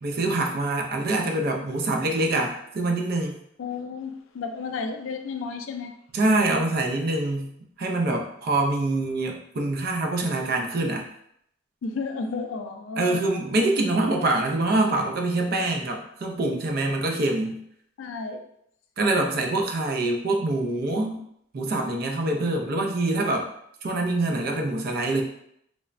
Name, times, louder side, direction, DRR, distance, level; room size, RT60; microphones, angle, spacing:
voice 1, 0.0-3.4 6.1-7.5 7.8-11.0 13.0-17.6 19.0-21.2 21.5-23.5 23.8-25.2, right 2 dB, 50° right, 2 dB, 0.4 m, -25 dB
voice 2, 3.6-5.9 11.8-13.3 18.0-18.4, left 4 dB, 80° left, 6 dB, 0.3 m, -32 dB
3.1 x 2.1 x 2.4 m, 0.72 s
head